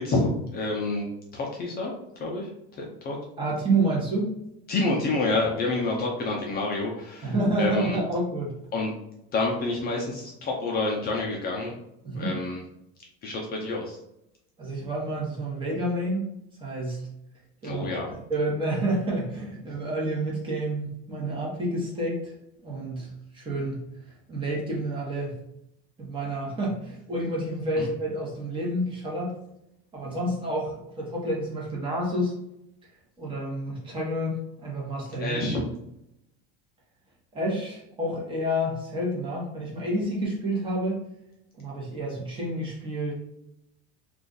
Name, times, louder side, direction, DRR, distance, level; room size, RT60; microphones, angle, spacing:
voice 1, 0.0-1.9 2.2-2.5 2.8-3.2 4.7-8.0 8.7-8.9 9.3-11.7 12.1-12.6 13.2-14.0 17.6-18.1 27.8-27.9 35.2-35.6, left 2 dB, 30° left, -1 dB, 0.5 m, -28 dB
voice 2, 3.4-4.4 7.2-8.5 12.0-12.3 14.6-16.3 16.6-17.1 17.6-17.9 18.3-22.3 22.6-23.9 24.3-25.4 26.0-29.3 29.9-32.3 33.2-35.4 37.3-41.0 41.6-43.1, right 1 dB, 15° right, -4 dB, 1.0 m, -29 dB
2.4 x 2.4 x 3.8 m, 0.81 s
supercardioid pair, 150°, 33 cm